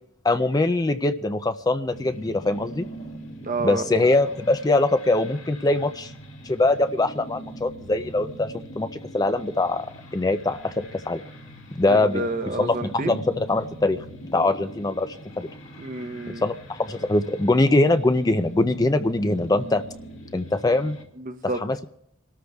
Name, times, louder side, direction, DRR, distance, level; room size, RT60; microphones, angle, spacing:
voice 1, 0.2-2.9 3.6-6.1 6.4-8.9 9.1-11.2 11.7-12.2 12.6-14.0 14.3-15.5 16.4-19.8 20.3-21.0 21.6-21.9, left 2 dB, 20° left, 9 dB, 0.4 m, -22 dB
sound 1, 1.9-21.0, right 1 dB, 65° left, 1.8 m, -42 dB
voice 2, 3.4-3.8 11.9-13.2 15.8-16.4 21.2-21.6, right 2 dB, 40° right, 8 dB, 0.8 m, -29 dB
27.5 x 13.0 x 2.3 m, 0.74 s
head